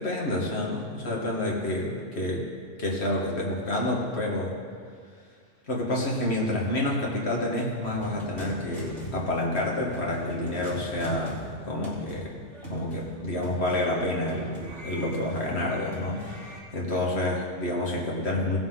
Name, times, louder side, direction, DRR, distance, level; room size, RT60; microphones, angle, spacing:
voice 1, 0.0-2.5 2.8-4.6 5.7-11.4 11.7-12.4 12.7-18.6, left 1 dB, 60° left, -2 dB, 2.0 m, -29 dB
sound 1, 7.8-16.6, right 1 dB, 75° right, 2.7 m, -39 dB
16.5 x 7.3 x 3.8 m, 2.1 s
omnidirectional pair, 1.2 m